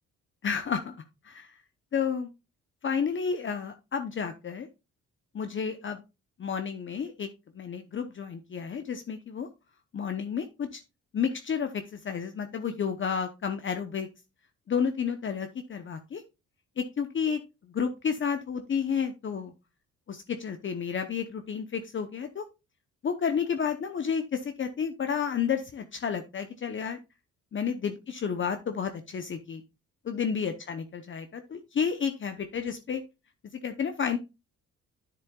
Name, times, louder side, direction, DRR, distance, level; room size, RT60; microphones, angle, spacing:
voice 1, 0.4-1.6 1.9-2.3 2.8-4.7 5.3-6.0 6.4-7.3 7.5-9.5 9.9-10.8 11.1-14.1 14.7-16.2 16.8-17.4 17.7-19.5 20.1-22.4 23.0-27.0 27.5-29.6 30.0-33.0 33.5-34.2, left 6 dB, 40° left, 7 dB, 0.9 m, -31 dB
9.9 x 7.2 x 2.4 m, 0.26 s
cardioid pair, 90°, 30 cm